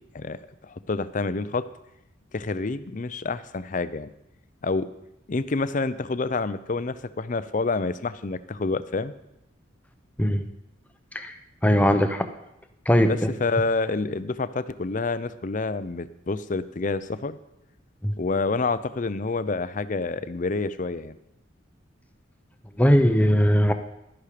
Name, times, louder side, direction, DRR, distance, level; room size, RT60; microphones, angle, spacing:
voice 1, 0.1-1.7 2.3-4.1 4.6-4.9 5.3-9.1 13.0-17.4 18.2-21.2, left 3 dB, 40° left, 14 dB, 0.5 m, -28 dB
voice 2, 11.6-12.3 12.9-13.1 18.0-18.1 22.8-23.7, equal, 5° left, 8 dB, 0.7 m, -19 dB
12.0 x 10.5 x 5.0 m, 0.86 s
head